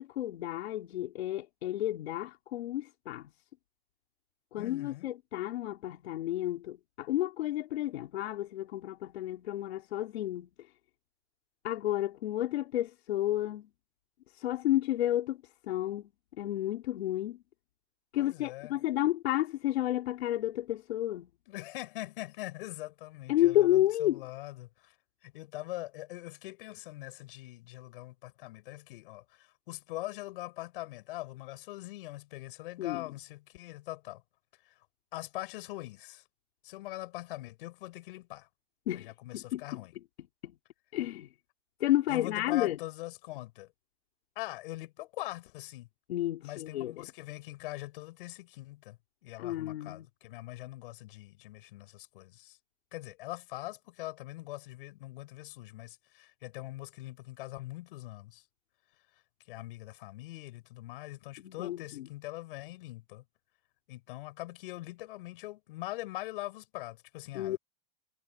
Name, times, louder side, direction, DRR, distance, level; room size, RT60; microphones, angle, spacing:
voice 1, 0.0-3.3 4.5-10.5 11.6-13.7 14.4-15.4 15.7-16.1 16.4-17.4 18.1-21.3 23.3-24.2 32.8-33.0 38.9-39.1 39.5-39.8 40.4-40.5 40.9-41.3 41.8-42.8 46.1-47.0 49.4-50.1 61.4-62.1 67.3-67.6, left 14 dB, 80° left, 3.5 m, -31 dB
voice 2, 4.6-5.1 18.2-18.8 21.5-25.0 25.2-34.2 34.7-34.8 35.1-36.2 36.6-38.5 38.9-39.9 42.1-43.7 44.4-45.9 46.4-52.6 52.9-58.4 59.1-59.2 59.5-63.2 63.9-67.6, left 18 dB, 60° left, 7.4 m, -42 dB
supercardioid pair, 165°, 31 cm